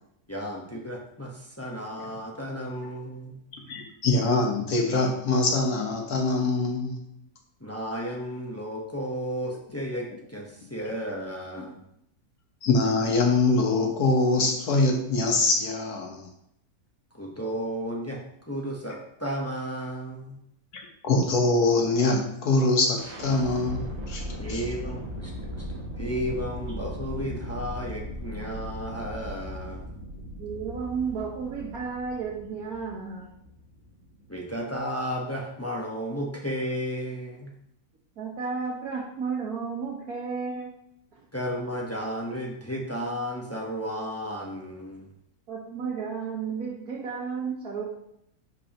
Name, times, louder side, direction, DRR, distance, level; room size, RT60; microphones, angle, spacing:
voice 1, 0.3-3.4 7.6-11.8 17.1-20.4 24.4-25.7 26.0-29.9 34.3-37.5 41.3-45.1, equal, 10° left, -1 dB, 0.8 m, -33 dB
voice 2, 3.5-7.0 11.6-11.7 12.6-16.3 20.7-24.2 24.5-24.6, left 3 dB, 80° left, 2 dB, 1.6 m, -24 dB
sound 1, 23.0-34.8, equal, 50° right, 1.4 m, -38 dB
voice 3, 30.4-33.3 38.2-40.7 45.5-47.8, right 5 dB, 75° right, -4 dB, 1.7 m, -32 dB
10.5 x 4.6 x 2.9 m, 0.77 s
omnidirectional pair, 1.6 m